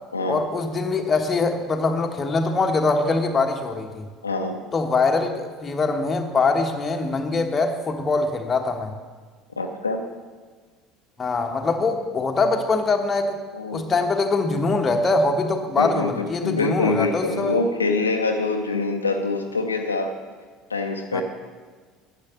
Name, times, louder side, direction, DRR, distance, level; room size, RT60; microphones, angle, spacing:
voice 1, 0.3-4.1 4.7-8.9 11.2-13.4 13.7-17.6 21.1-21.2, left 3 dB, 25° left, 4 dB, 1.2 m, -23 dB
voice 2, 4.2-4.6 9.6-10.0 13.5-13.9 15.8-20.1 20.7-21.2, left 3 dB, 85° left, 4 dB, 0.7 m, -25 dB
10.0 x 7.4 x 7.1 m, 1.5 s
figure-of-eight pair, 65°, 0 cm